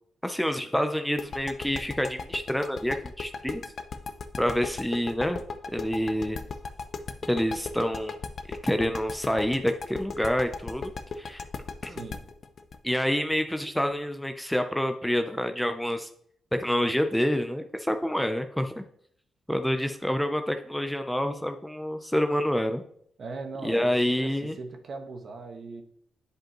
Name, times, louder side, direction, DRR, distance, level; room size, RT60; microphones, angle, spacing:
voice 1, 0.2-3.6 4.4-5.4 5.7-6.4 7.3-8.2 8.5-11.4 11.8-12.0 12.8-16.1 16.5-18.8 19.5-22.8 23.6-24.5, equal, 5° left, 7 dB, 0.5 m, -27 dB
sound 1, 1.2-13.9, left 4 dB, 50° left, 0.6 m, -36 dB
voice 2, 11.8-12.2 23.2-25.8, right 3 dB, 55° right, 4 dB, 1.2 m, -39 dB
9.9 x 5.2 x 3.0 m, 0.65 s
cardioid pair, 100°, 0 cm